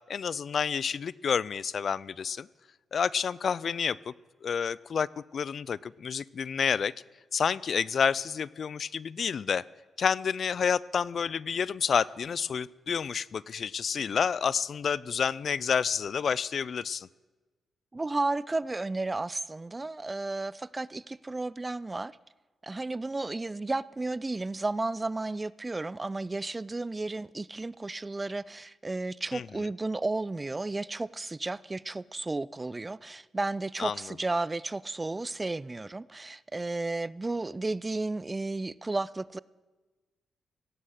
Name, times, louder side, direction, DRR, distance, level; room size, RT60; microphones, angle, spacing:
voice 1, 0.1-2.5 2.9-4.1 4.4-6.9 7.3-9.6 10.0-17.1 29.3-29.5 33.8-34.0, left 6 dB, 60° left, 0.3 m, -29 dB
voice 2, 17.9-22.1 22.6-39.4, right 2 dB, 25° right, 0.4 m, -33 dB
17.0 x 7.7 x 6.5 m
cardioid pair, 60°, 0 cm